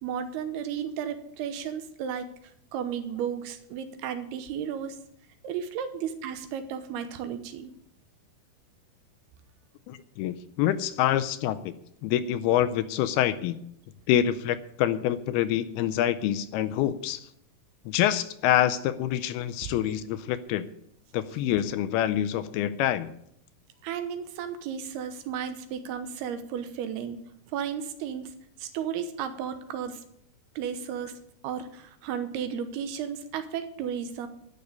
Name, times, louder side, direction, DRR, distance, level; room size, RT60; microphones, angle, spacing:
voice 1, 0.0-5.0 5.4-7.7 23.8-27.2 27.5-30.0 30.6-31.1 31.4-34.3, right 8 dB, 80° right, 9 dB, 2.9 m, -34 dB
voice 2, 9.9-11.7 12.0-13.6 14.1-17.3 17.9-20.7 21.1-23.1, left 11 dB, 80° left, 13 dB, 2.5 m, -26 dB
12.0 x 6.7 x 9.6 m, 0.72 s
omnidirectional pair, 4.7 m